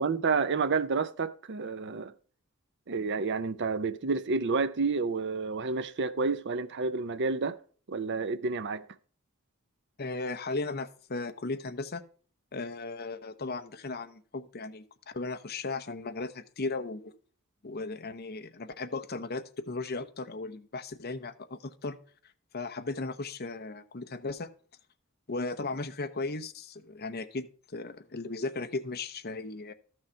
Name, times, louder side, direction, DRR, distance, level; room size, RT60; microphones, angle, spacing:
voice 1, 0.0-2.1 2.9-7.6 7.9-8.9, right 4 dB, 55° right, 0.6 m, -30 dB
voice 2, 10.0-12.0 12.5-17.1 17.6-22.0 22.5-24.5 25.3-27.5 27.7-29.7, left 3 dB, 45° left, 0.8 m, -36 dB
13.0 x 6.4 x 4.5 m
head